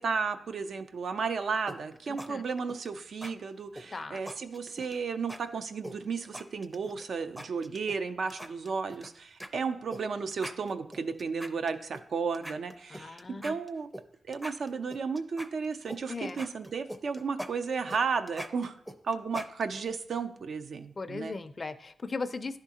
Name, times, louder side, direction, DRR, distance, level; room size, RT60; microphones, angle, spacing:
voice 1, 0.0-13.9 14.3-18.7 19.0-21.4, right 5 dB, 75° right, 8 dB, 0.5 m, -33 dB
sound 1, 1.7-2.3 2.6-2.9 3.2-3.3 3.7-5.0 5.3-5.4 5.8-7.0 7.4-8.0 8.3-9.1 9.4-9.5 9.9-10.0 10.3-12.0 12.3-14.0 14.3-16.0 16.3-19.9, equal, 10° right, 0.5 m, -42 dB
voice 2, 2.1-2.4 3.9-4.2 12.9-13.5 16.1-16.4 21.0-22.6, left 3 dB, 45° left, 12 dB, 0.4 m, -38 dB
10.5 x 3.6 x 2.8 m, 0.65 s
cardioid pair, 60°, 0 cm